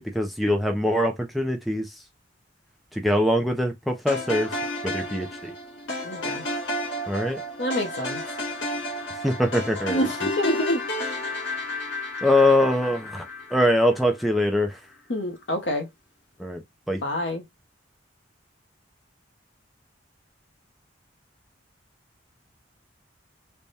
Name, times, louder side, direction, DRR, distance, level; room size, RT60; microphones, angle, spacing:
voice 1, 0.0-1.9 2.9-4.5 4.8-5.5 7.1-7.4 9.2-10.0 12.2-14.8 16.4-16.6 16.9-17.0, left 1 dB, ahead, 0.4 m, -23 dB
sound 1, 4.1-14.3, left 1 dB, 85° left, 1.7 m, -32 dB
voice 2, 6.0-6.5 7.6-8.2 9.9-10.8 15.1-15.9 17.0-17.4, equal, 65° left, 0.9 m, -27 dB
3.4 x 2.2 x 4.0 m
head